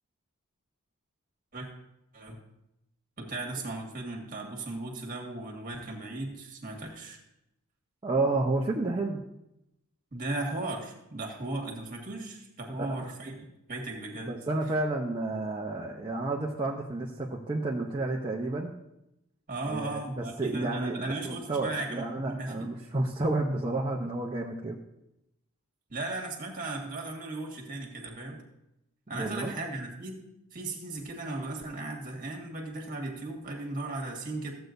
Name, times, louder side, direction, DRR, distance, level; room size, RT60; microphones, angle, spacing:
voice 1, 3.2-7.2 10.1-13.4 13.7-14.3 19.5-22.7 25.9-28.4 29.1-30.2 30.5-34.5, right 2 dB, 40° right, 1 dB, 1.8 m, -36 dB
voice 2, 8.0-9.2 12.7-12.9 14.2-18.7 19.7-24.8 29.1-29.5, right 2 dB, 25° right, -3 dB, 0.7 m, -31 dB
14.5 x 8.0 x 2.6 m, 0.85 s
head